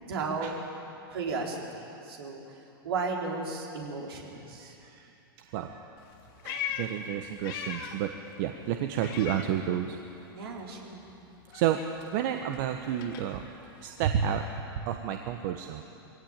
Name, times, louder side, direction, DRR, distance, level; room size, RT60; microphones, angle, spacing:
voice 1, 0.1-0.5 1.1-2.4 2.8-4.8 10.3-11.0, right 4 dB, 75° right, -1 dB, 4.2 m, -34 dB
voice 2, 4.6-5.1 5.4-5.8 6.4-8.1 8.4-10.0 11.5-11.8 12.1-14.4 14.8-15.8, right 10 dB, 55° right, 5 dB, 1.2 m, -31 dB
Meow, 6.0-8.1 8.4-10.1 10.4-14.6, left 8 dB, 60° left, 2.9 m, -41 dB
21.5 x 17.0 x 9.0 m, 2.8 s
hypercardioid pair, 115°, 13 cm